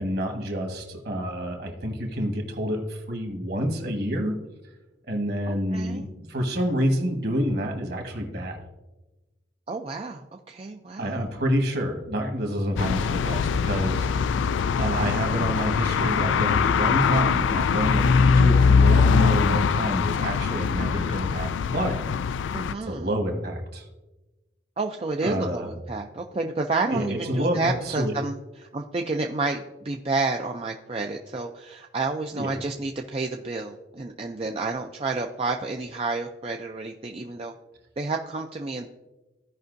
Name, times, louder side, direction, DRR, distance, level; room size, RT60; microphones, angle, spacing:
voice 1, 0.0-4.4 5.1-8.6 11.0-14.1 14.8-22.0 22.8-23.9 25.2-25.7 26.9-28.1 32.3-32.5, equal, 55° right, 3 dB, 1.5 m, -28 dB
voice 2, 5.5-6.1 9.7-11.1 22.5-23.1 24.8-37.5 38.0-38.9, right 3 dB, 30° right, 3 dB, 0.4 m, -30 dB
sound 1, 12.8-22.7, left 5 dB, 80° left, 0.3 m, -22 dB
15.5 x 5.3 x 2.6 m, 1.1 s
head